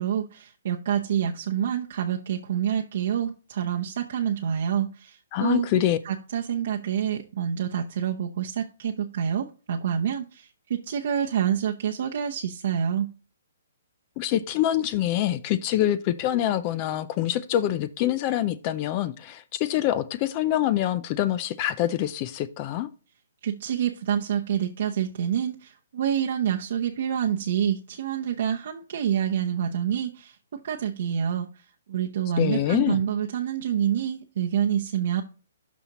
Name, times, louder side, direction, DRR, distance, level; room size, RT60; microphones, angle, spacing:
voice 1, 0.0-5.7 6.0-13.1 23.4-35.2, right 9 dB, 55° right, 2 dB, 0.8 m, -27 dB
voice 2, 5.3-6.0 14.2-22.9 32.4-33.0, left 12 dB, 30° left, 15 dB, 0.4 m, -25 dB
12.5 x 4.2 x 3.0 m, 0.35 s
hypercardioid pair, 160°, 0 cm